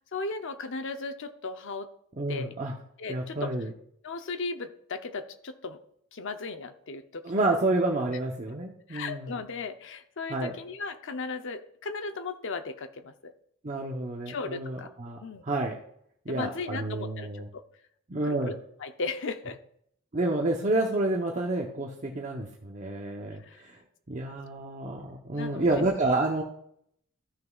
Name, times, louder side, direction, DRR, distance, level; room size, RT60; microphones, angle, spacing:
voice 1, 0.1-1.9 2.3-2.5 3.0-3.7 4.0-5.8 6.1-7.2 8.9-13.3 14.3-14.9 15.2-15.4 16.3-17.6 18.2-19.6 23.4-23.6 25.3-25.7, left 4 dB, 60° left, 8 dB, 0.7 m, -36 dB
voice 2, 2.2-2.7 3.1-3.7 7.2-9.3 10.3-10.6 13.6-15.2 15.5-15.7 16.3-17.5 18.1-18.5 20.1-23.8 24.1-26.4, right 2 dB, 35° right, -1 dB, 0.9 m, -29 dB
14.5 x 6.5 x 2.4 m, 0.69 s
head